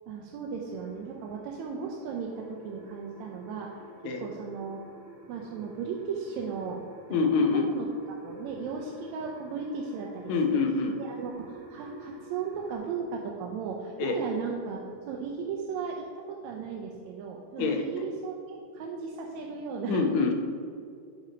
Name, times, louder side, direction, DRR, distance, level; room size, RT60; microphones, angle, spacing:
voice 1, 0.1-3.9 4.2-4.8 5.3-6.8 7.5-10.6 11.0-14.8 15.1-20.3, right 5 dB, 75° right, 0 dB, 1.9 m, -36 dB
sound 1, 0.6-12.8, right 1 dB, 55° right, 2.8 m, -49 dB
voice 2, 7.1-7.7 10.3-11.0 14.0-14.2 17.6-17.8 19.9-20.3, left 4 dB, 75° left, 4 dB, 2.2 m, -25 dB
10.5 x 5.7 x 5.0 m, 2.4 s
omnidirectional pair, 3.5 m